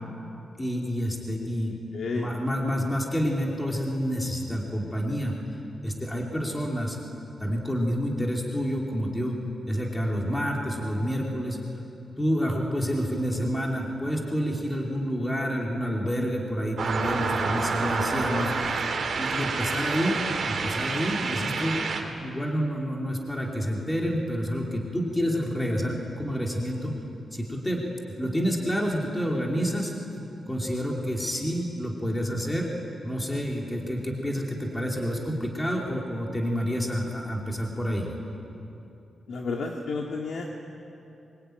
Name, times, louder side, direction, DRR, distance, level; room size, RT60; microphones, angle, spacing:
voice 1, 0.6-1.8 2.1-5.3 5.8-7.0 7.4-9.4 9.7-11.6 12.2-18.9 19.2-20.2 20.5-21.8 22.2-26.9 27.3-27.8 28.2-29.9 30.5-32.7 33.0-38.1, equal, 10° left, -1 dB, 2.8 m, -28 dB
voice 2, 1.9-2.3 39.3-40.5, left 4 dB, 65° left, 0 dB, 2.0 m, -31 dB
sound 1, 16.8-22.0, right 4 dB, 55° right, 3.1 m, -28 dB
24.5 x 24.0 x 9.3 m, 2.9 s
wide cardioid pair, 165°, 0 cm